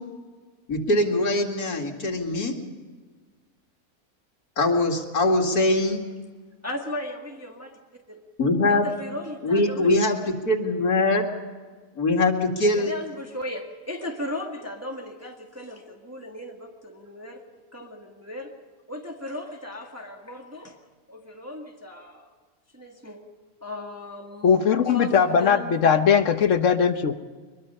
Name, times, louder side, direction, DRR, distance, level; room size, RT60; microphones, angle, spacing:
voice 1, 0.7-2.5 4.6-6.0 8.4-8.9 9.4-10.2 10.5-11.3 12.0-12.9, left 2 dB, 75° left, 1 dB, 2.7 m, -22 dB
voice 2, 6.6-7.8 8.1-8.3 8.7-10.0 12.8-17.4 17.7-18.5 18.9-20.8 21.1-22.3 22.7-23.3 23.6-25.9, left 1 dB, 10° right, 1 dB, 1.6 m, -37 dB
voice 3, 24.4-27.1, left 7 dB, 55° left, 9 dB, 1.3 m, -20 dB
22.5 x 22.5 x 5.5 m, 1.5 s
omnidirectional pair, 1.6 m